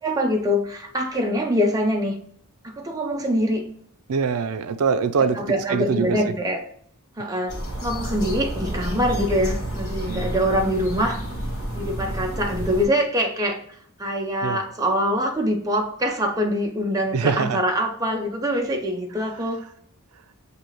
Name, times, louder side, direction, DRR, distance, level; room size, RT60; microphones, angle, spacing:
voice 1, 0.0-2.2 2.6-3.7 5.2-6.6 7.2-11.2 11.7-13.6 14.0-19.6, equal, 15° right, 2 dB, 0.5 m, -24 dB
voice 2, 4.1-5.4 5.7-6.3 10.1-10.3 14.4-14.6 17.1-17.6, right 5 dB, 75° right, 10 dB, 0.4 m, -23 dB
sound 1, 7.5-12.9, equal, 60° left, 1.2 m, -30 dB
6.5 x 2.7 x 3.0 m, 0.65 s
head